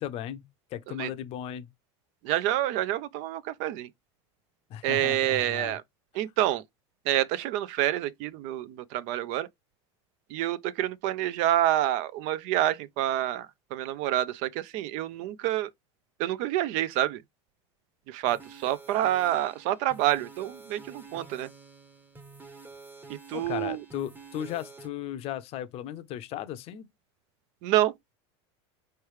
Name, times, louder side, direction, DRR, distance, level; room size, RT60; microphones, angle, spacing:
voice 1, 0.0-1.7 4.7-5.8 23.3-26.9, left 11 dB, 45° left, 0.6 m, -36 dB
voice 2, 2.2-3.9 4.8-5.8 6.1-6.6 7.1-9.5 10.3-15.7 16.2-17.2 18.1-21.5 23.1-23.8 27.6-28.1, right 13 dB, 55° right, 0.4 m, -28 dB
sound 1, 18.3-24.9, right 4 dB, 10° right, 0.8 m, -49 dB
4.5 x 3.2 x 3.1 m
supercardioid pair, 130°, 15 cm